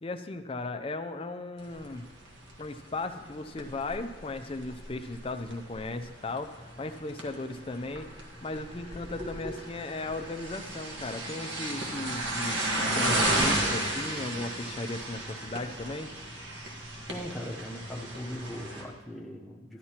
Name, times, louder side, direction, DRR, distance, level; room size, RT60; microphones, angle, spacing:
voice 1, 0.0-2.1 2.6-16.1, left 2 dB, 30° left, 8 dB, 0.4 m, -36 dB
sound 1, 1.6-18.8, right 1 dB, 70° right, 1.5 m, -34 dB
voice 2, 17.1-19.8, equal, ahead, -2 dB, 0.8 m, -39 dB
12.0 x 11.0 x 2.9 m, 1.3 s
head